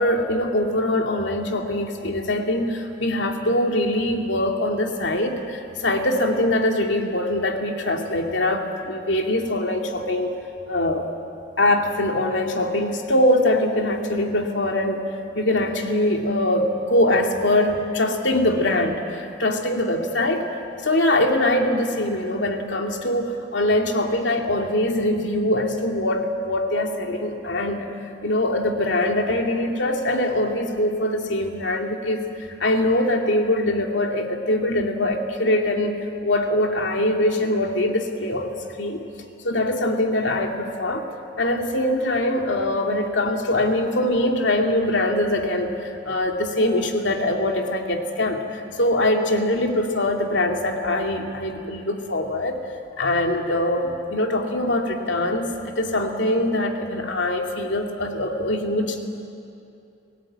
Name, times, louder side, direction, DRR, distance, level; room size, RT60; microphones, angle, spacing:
voice 1, 0.0-10.4 10.7-11.1 11.6-15.0 15.3-27.9 28.2-32.2 32.6-39.0 39.4-41.1 41.4-52.6 53.0-59.0, left 1 dB, 80° left, 3 dB, 2.3 m, -23 dB
29.5 x 17.5 x 8.7 m, 2.7 s
head